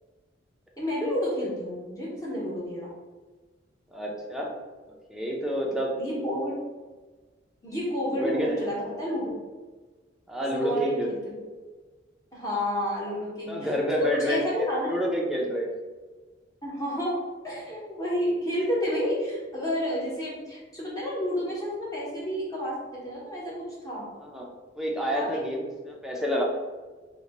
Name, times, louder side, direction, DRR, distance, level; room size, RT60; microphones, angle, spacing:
voice 1, 0.8-2.9 6.0-6.5 7.6-9.4 10.5-11.2 12.3-13.7 14.0-14.9 16.6-24.1 25.1-25.3, equal, 20° left, -6 dB, 0.9 m, -30 dB
voice 2, 3.9-4.5 5.1-6.5 8.1-8.6 10.3-11.1 13.5-15.7 24.2-24.5 24.8-26.4, equal, ahead, -2 dB, 0.5 m, -29 dB
2.8 x 2.2 x 4.0 m, 1.3 s
head